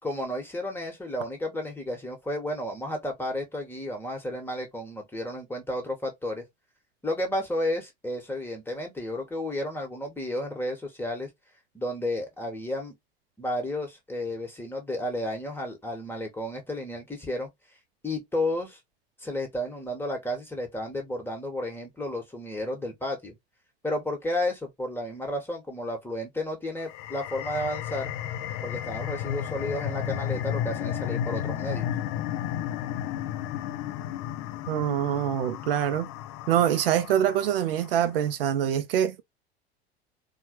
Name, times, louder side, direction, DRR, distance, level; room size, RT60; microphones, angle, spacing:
voice 1, 0.0-6.4 7.0-11.3 11.7-12.9 13.4-17.5 18.0-18.8 19.2-23.3 23.8-28.1 28.6-31.9, left 1 dB, 5° left, 1.4 m, -32 dB
sound 1, 26.8-37.9, left 10 dB, 40° left, 0.4 m, -33 dB
voice 2, 34.7-36.1 36.5-39.2, right 10 dB, 60° right, 0.5 m, -25 dB
4.2 x 2.2 x 2.9 m
figure-of-eight pair, 80°, 32 cm